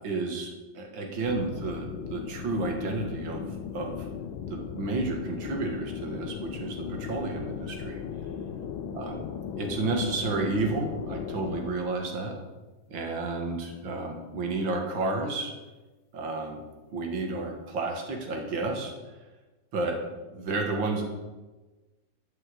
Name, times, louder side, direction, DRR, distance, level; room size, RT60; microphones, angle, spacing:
voice 1, 0.0-3.4 3.7-4.1 4.5-8.0 8.9-9.2 9.6-12.3 12.9-15.5 16.1-16.6 16.9-18.9 19.7-20.0 20.3-21.0, right 3 dB, 75° right, 2 dB, 2.5 m, -31 dB
sound 1, 1.2-11.7, left 8 dB, 85° left, 1.6 m, -37 dB
13.5 x 5.7 x 8.4 m, 1.2 s
omnidirectional pair, 2.1 m